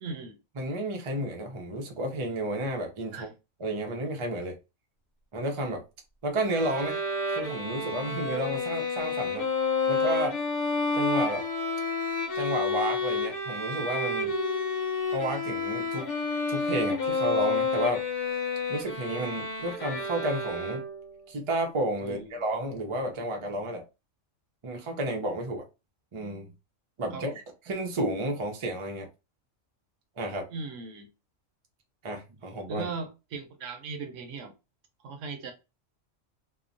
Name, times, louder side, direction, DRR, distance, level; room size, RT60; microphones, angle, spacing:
voice 1, 0.0-0.4 3.1-3.3 22.0-22.4 27.1-27.4 30.5-31.1 32.7-34.5 35.0-35.5, right 4 dB, 75° right, 0.9 m, -38 dB
voice 2, 0.6-3.3 3.6-4.5 5.3-5.8 6.2-7.0 7.3-9.5 9.9-10.4 10.9-11.5 12.3-14.3 15.1-16.1 16.5-18.0 18.7-20.8 21.3-23.8 24.6-25.7 26.1-26.5 27.0-27.3 27.7-29.1 30.2-30.5 32.0-32.9, right 1 dB, 55° right, 0.3 m, -31 dB
Bowed string instrument, 6.5-21.1, left 3 dB, 50° left, 0.8 m, -30 dB
2.9 x 2.0 x 2.5 m
omnidirectional pair, 1.4 m